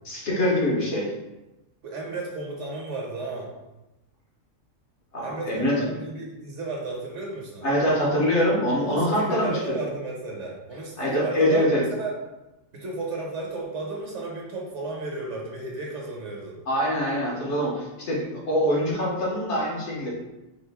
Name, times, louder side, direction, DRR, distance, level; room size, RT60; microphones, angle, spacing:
voice 1, 0.1-1.1 5.1-5.9 7.6-9.5 11.0-11.8 16.7-20.1, equal, 55° left, -4 dB, 1.3 m, -24 dB
voice 2, 1.8-3.5 5.2-7.7 8.8-12.2 12.7-16.6, right 2 dB, 60° right, -2 dB, 1.2 m, -33 dB
4.4 x 2.5 x 3.5 m, 1.0 s
omnidirectional pair, 1.4 m